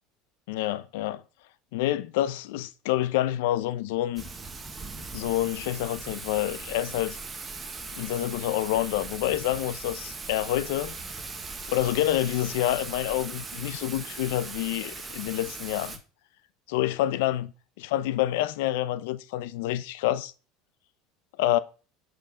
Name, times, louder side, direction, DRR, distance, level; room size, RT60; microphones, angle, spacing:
voice 1, 0.5-1.2 1.7-4.2 5.1-7.2 7.9-10.9 11.7-16.0 16.7-17.5 17.8-20.3 21.4-21.6, left 14 dB, 80° left, 0.6 m, -27 dB
Thunder / Rain, 4.2-16.0, right 4 dB, 20° right, 1.1 m, -39 dB
8.7 x 5.3 x 3.8 m
supercardioid pair, 125°, 0 cm